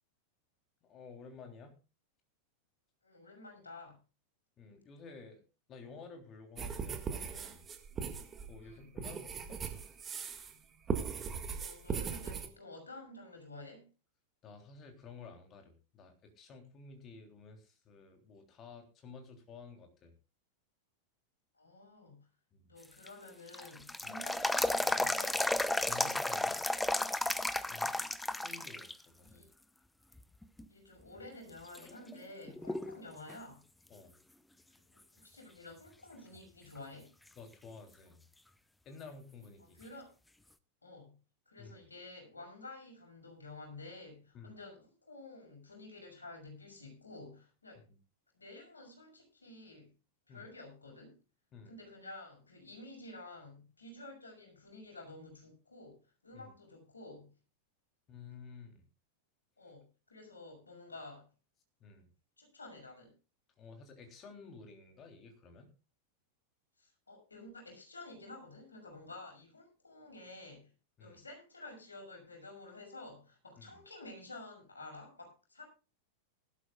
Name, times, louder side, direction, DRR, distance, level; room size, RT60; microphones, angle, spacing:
voice 1, 0.8-1.7 4.6-5.4 5.7-7.7 8.5-9.6 14.4-20.1 22.5-22.7 24.0-24.2 25.8-26.6 27.7-27.9 28.4-29.4 32.8-32.9 33.9-34.1 37.3-38.2 38.8-39.8 41.6-41.7 44.3-44.6 47.9-48.0 50.3-50.5 51.5-51.8 56.3-56.5 58.1-58.8 61.8-62.1 63.6-65.7 71.0-71.2 73.6-73.7, left 4 dB, 30° left, 4 dB, 3.4 m, -52 dB
voice 2, 3.0-4.0 8.6-9.0 11.5-13.9 21.5-22.3 22.7-25.4 27.6-28.0 29.3-29.5 30.7-33.6 34.9-37.1 39.6-40.1 40.8-41.2 41.5-47.9 48.3-49.9 50.3-51.2 51.7-57.3 59.6-61.3 62.4-63.1 66.8-70.7 71.0-75.7, left 2 dB, 75° left, 2 dB, 6.2 m, -51 dB
sound 1, 6.6-10.6 10.9-12.5, right 6 dB, 20° right, 1.8 m, -39 dB
sound 2, 22.8-28.9 29.3-29.4 30.2-30.7 31.2-31.3 31.8-33.0 33.3-33.4 36.8-36.9 39.8-39.9, left 2 dB, 5° left, 0.8 m, -33 dB
19.5 x 12.5 x 2.4 m, 0.33 s
figure-of-eight pair, 90°, 0 cm